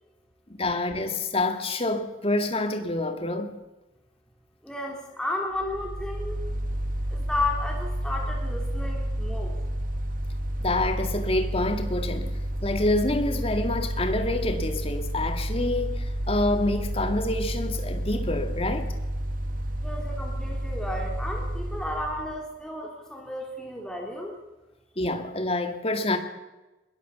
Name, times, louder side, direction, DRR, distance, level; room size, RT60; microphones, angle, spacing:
voice 1, 0.5-3.6 10.6-18.9 25.0-26.2, left 2 dB, 35° left, 2.2 m, -27 dB
voice 2, 4.6-6.4 7.1-9.5 19.8-24.3, left 2 dB, 5° left, 3.3 m, -33 dB
Mechanical fan, 5.6-22.4, equal, 50° right, 2.2 m, -30 dB
21.5 x 20.5 x 7.1 m
head